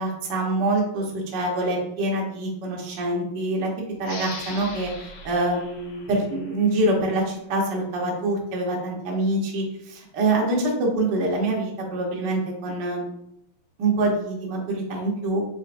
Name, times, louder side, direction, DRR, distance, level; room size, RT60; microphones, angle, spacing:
voice 1, 0.0-3.7 4.0-4.9 5.2-13.0 13.8-15.4, right 2 dB, 80° right, -1 dB, 0.9 m, -25 dB
sound 1, 4.0-7.3, left 3 dB, 65° left, 1.6 m, -40 dB
4.5 x 4.2 x 2.5 m, 0.78 s
omnidirectional pair, 3.4 m